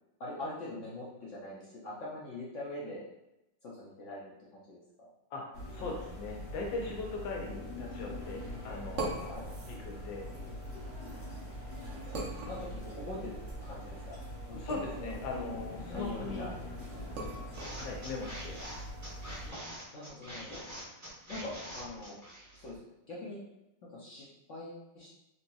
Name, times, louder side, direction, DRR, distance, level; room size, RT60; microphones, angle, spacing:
voice 1, 0.2-3.0 3.6-5.1 9.0-9.4 12.5-14.0 14.5-14.7 15.0-15.1 15.9-16.5 19.5-19.6 19.9-20.6 21.3-22.2 22.5-22.8 23.1-23.4 23.8-25.1, left 2 dB, 70° left, -6 dB, 0.7 m, -43 dB
voice 2, 5.3-9.4 9.7-10.3 14.5-16.5 17.7-18.6, left 3 dB, 90° left, 0 dB, 1.4 m, -40 dB
sound 1, 5.5-19.5, left 1 dB, 50° left, 1.4 m, -43 dB
sound 2, 8.2-18.7, right 2 dB, 80° right, 0.6 m, -44 dB
sound 3, 17.5-22.8, equal, 20° right, 0.4 m, -45 dB
3.8 x 2.7 x 2.2 m, 0.93 s
omnidirectional pair, 2.0 m